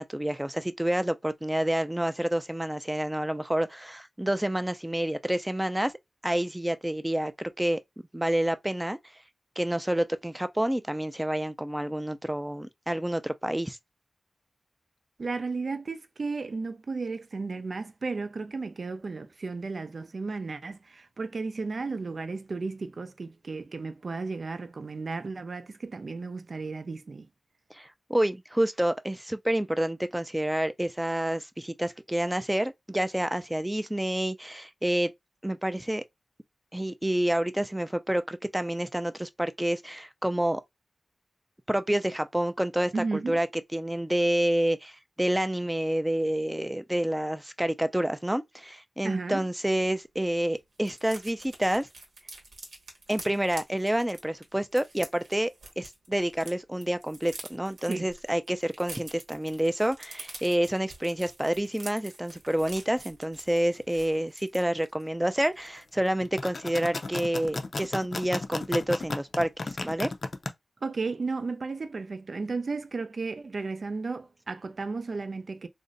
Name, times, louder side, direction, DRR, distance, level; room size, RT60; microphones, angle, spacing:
voice 1, 0.0-5.9 6.2-7.8 8.1-9.0 9.6-13.8 27.7-35.1 35.4-36.0 36.7-40.6 41.7-43.5 43.7-51.9 53.1-70.1, right 1 dB, 10° right, 0.4 m, -28 dB
voice 2, 15.2-27.3 42.9-43.4 49.0-49.4 57.9-58.1 70.8-75.7, right 4 dB, 65° right, 0.4 m, -34 dB
sound 1, 49.8-49.9 50.2-50.3 50.5-56.5 56.8-65.0 65.4-65.6 65.8-66.1, right 2 dB, 85° right, 1.0 m, -47 dB
sound 2, 66.2-70.5, left 3 dB, 65° left, 0.5 m, -33 dB
2.5 x 2.1 x 3.8 m
cardioid pair, 45°, 0 cm